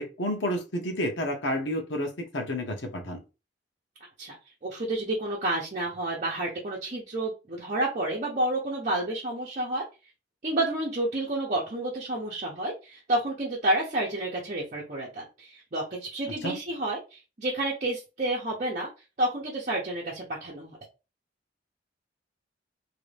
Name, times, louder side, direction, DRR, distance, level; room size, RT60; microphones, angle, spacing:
voice 1, 0.0-3.2 16.4-16.6, left 1 dB, 90° left, 1.0 m, -30 dB
voice 2, 4.6-9.8 10.4-18.9 19.2-20.8, right 1 dB, 45° right, 0.8 m, -30 dB
2.9 x 2.6 x 3.3 m
head